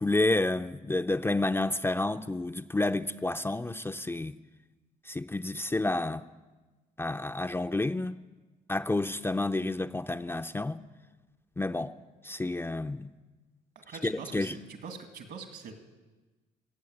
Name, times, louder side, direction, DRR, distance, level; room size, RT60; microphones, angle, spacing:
voice 1, 0.0-4.4 5.1-6.3 7.0-8.2 8.7-10.8 11.6-12.0 12.2-13.1 14.0-14.6, left 2 dB, 15° left, 0.5 m, -30 dB
voice 2, 13.9-15.7, right 5 dB, 70° right, 2.2 m, -43 dB
17.5 x 7.5 x 7.9 m
supercardioid pair, 75°, 18 cm